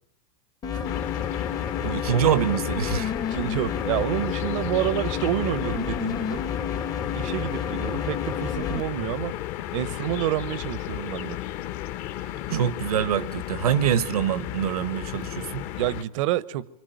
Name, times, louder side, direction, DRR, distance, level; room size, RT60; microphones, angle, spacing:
sound 1, 0.6-8.8, left 7 dB, 20° left, 1.0 m, -30 dB
sound 2, 0.8-16.0, left 13 dB, 40° left, 1.2 m, -34 dB
voice 1, 1.8-3.1 12.6-15.7, right 9 dB, 80° right, 1.3 m, -25 dB
voice 2, 3.3-6.4 7.1-9.3 9.7-11.4 12.5-12.7 15.8-16.7, right 14 dB, 60° right, 1.0 m, -28 dB
25.0 x 24.5 x 9.2 m
supercardioid pair, 140°, 19 cm